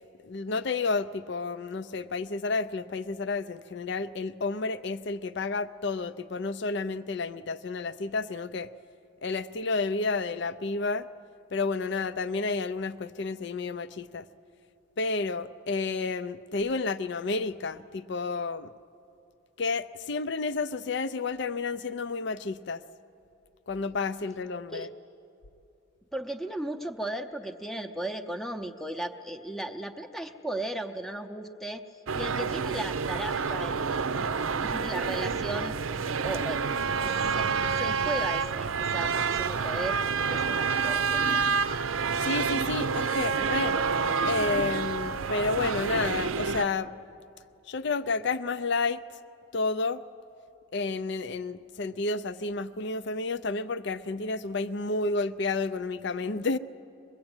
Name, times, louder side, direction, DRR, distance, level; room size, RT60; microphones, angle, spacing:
voice 1, 0.2-8.7 9.2-11.1 11.5-14.3 15.0-18.7 19.6-22.8 23.7-24.9 42.1-43.8 44.3-46.9 47.7-49.0 49.5-50.0 50.7-56.6, left 3 dB, 55° left, 13 dB, 0.5 m, -30 dB
voice 2, 26.1-31.8 32.1-41.4, right 1 dB, ahead, 5 dB, 0.7 m, -36 dB
sound 1, 32.1-46.6, right 5 dB, 85° right, 0.6 m, -28 dB
22.5 x 21.5 x 8.9 m, 2.7 s
head